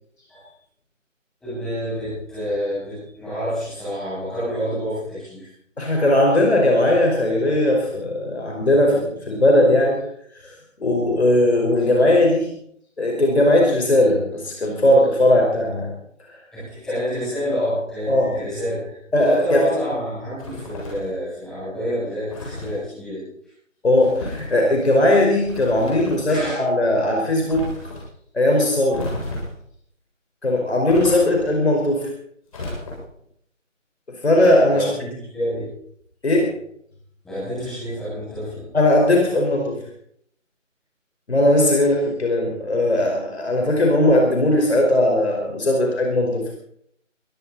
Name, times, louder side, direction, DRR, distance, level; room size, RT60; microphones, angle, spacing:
voice 1, 1.4-5.5 16.5-23.2 26.0-26.6 34.7-35.7 37.2-38.7, equal, ahead, -12 dB, 7.3 m, -28 dB
voice 2, 5.8-10.0 10.4-12.5 13.0-15.9 16.3-16.4 18.1-18.3 19.1-19.6 23.8-27.6 28.3-29.1 30.4-32.1 34.2-34.9 36.2-36.5 38.7-39.8 41.3-46.4, left 1 dB, 55° left, 0 dB, 5.1 m, -18 dB
sound 1, 20.4-21.2 22.3-22.8 23.9-24.5 25.4-26.3 27.5-28.0 28.9-29.6 30.9-31.6 32.5-33.2, left 1 dB, 30° left, 7.5 m, -33 dB
22.5 x 15.0 x 4.3 m, 0.68 s
figure-of-eight pair, 165°, 38 cm